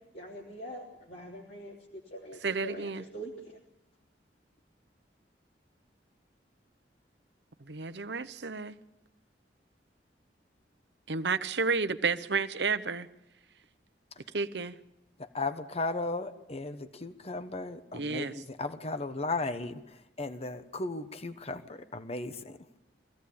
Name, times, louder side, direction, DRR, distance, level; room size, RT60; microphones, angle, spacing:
voice 1, 0.1-3.6, right 1 dB, 60° left, 3.3 m, -44 dB
voice 2, 2.4-3.0 7.6-8.8 11.1-13.1 14.3-14.8 17.9-18.3, right 4 dB, 70° right, 1.0 m, -31 dB
voice 3, 15.2-22.6, left 3 dB, 35° left, 1.1 m, -36 dB
24.0 x 16.5 x 8.6 m
head